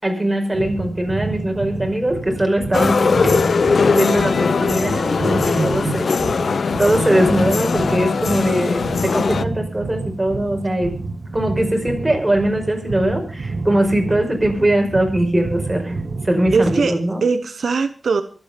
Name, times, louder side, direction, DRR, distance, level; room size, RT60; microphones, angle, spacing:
voice 1, 0.0-3.4 3.9-10.9 11.3-17.2, right 1 dB, 20° right, 3 dB, 5.3 m, -21 dB
sound 1, 0.5-16.9, right 3 dB, 65° right, 1.8 m, -29 dB
sound 2, 2.7-9.4, left 5 dB, 75° left, 0.7 m, -20 dB
voice 2, 5.6-6.0 16.5-16.9 17.2-18.2, right 4 dB, 90° right, 9 dB, 1.1 m, -20 dB
24.0 x 8.6 x 5.2 m, 0.39 s
wide cardioid pair, 90°, 0 cm